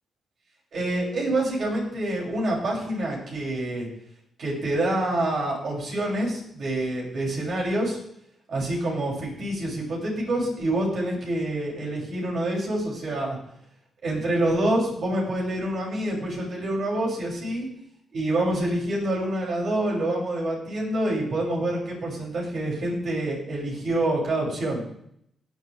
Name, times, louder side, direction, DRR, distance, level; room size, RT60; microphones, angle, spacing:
voice 1, 0.7-3.9 4.4-8.0 8.5-13.4 14.0-17.7 18.1-24.8, right 1 dB, 60° right, -3 dB, 7.5 m, -27 dB
18.0 x 13.0 x 3.6 m, 0.71 s
cardioid pair, 105°, 0 cm